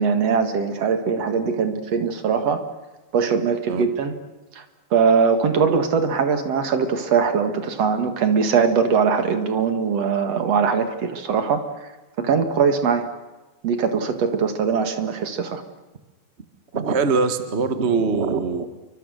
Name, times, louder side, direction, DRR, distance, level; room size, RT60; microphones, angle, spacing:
voice 1, 0.0-2.6 3.1-4.1 4.6-4.7 4.9-11.6 12.2-13.1 13.6-15.6, right 6 dB, 50° right, 7 dB, 2.7 m, -21 dB
voice 2, 16.7-18.7, right 4 dB, 75° right, 9 dB, 0.6 m, -22 dB
29.0 x 24.5 x 6.6 m, 1.1 s
omnidirectional pair, 4.2 m